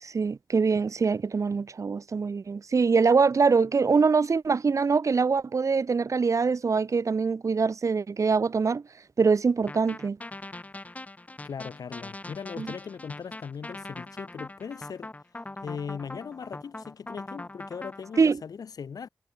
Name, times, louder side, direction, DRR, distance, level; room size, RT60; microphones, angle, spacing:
voice 1, 0.0-8.8 9.2-10.2 12.6-12.7 18.2-18.4, right 5 dB, 55° right, 1.9 m, -24 dB
sound 1, 9.7-18.2, left 2 dB, 25° left, 1.9 m, -42 dB
voice 2, 11.4-15.1 15.6-19.1, left 6 dB, 80° left, 7.9 m, -39 dB
cardioid pair, 75°, 6 cm